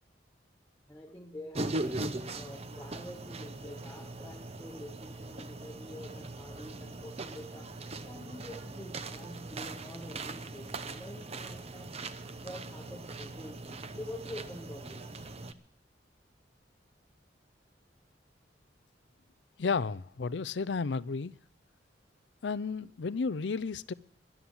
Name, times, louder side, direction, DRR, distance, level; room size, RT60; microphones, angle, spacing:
voice 1, 0.9-2.0 2.3-7.8 8.0-12.0 12.4-15.1, left 1 dB, 10° left, 1.0 m, -47 dB
sound 1, 1.5-15.5, right 2 dB, 35° right, 0.8 m, -40 dB
voice 2, 19.6-21.3 22.4-23.9, left 4 dB, 70° left, 0.5 m, -32 dB
13.0 x 11.0 x 7.3 m
head